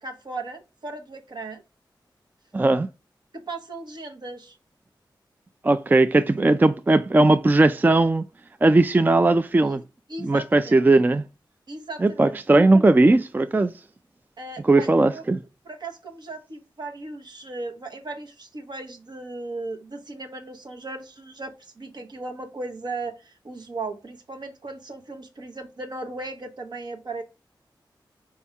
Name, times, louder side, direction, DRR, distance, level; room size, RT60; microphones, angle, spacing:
voice 1, 0.0-1.6 3.3-4.6 9.7-9.8 10.1-10.8 11.7-12.4 14.4-15.2 15.6-27.2, right 2 dB, 60° right, 0.9 m, -36 dB
voice 2, 2.5-2.9 5.6-8.2 8.6-9.8 10.2-11.2 12.0-13.7 14.6-15.4, right 2 dB, 20° right, 0.3 m, -18 dB
4.6 x 4.2 x 2.3 m
cardioid pair, 55°, 8 cm